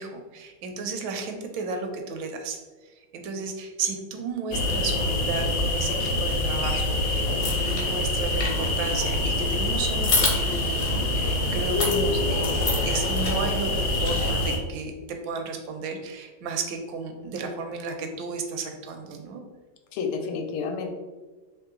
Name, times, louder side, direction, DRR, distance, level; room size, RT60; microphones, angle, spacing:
voice 1, 0.0-19.4, right 4 dB, 75° right, 5 dB, 1.2 m, -33 dB
sound 1, 4.5-14.6, left 2 dB, 70° left, 1.0 m, -25 dB
sound 2, 7.4-7.8 8.2-9.0 10.0-11.0 11.7-12.0 12.4-13.4 13.9-14.3, left 2 dB, 50° left, 0.7 m, -29 dB
voice 2, 19.9-20.9, left 5 dB, 85° left, 5 dB, 1.5 m, -31 dB
3.7 x 2.9 x 3.6 m, 1.3 s
omnidirectional pair, 2.4 m